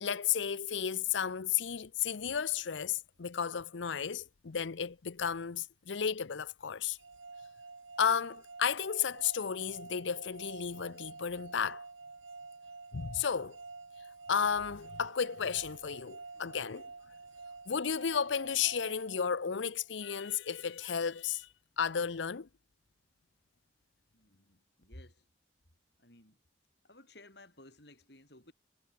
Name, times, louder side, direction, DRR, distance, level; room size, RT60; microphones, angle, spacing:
voice 1, 0.0-7.0 8.0-11.8 12.9-13.6 14.3-16.9 17.7-21.5 21.8-22.5, left 7 dB, 75° left, 0.6 m, -33 dB
sound 1, 7.0-19.9, right 3 dB, 85° right, 3.0 m, -49 dB
voice 2, 24.1-25.3 26.0-26.4 26.8-28.5, left 1 dB, 60° left, 7.6 m, -56 dB
head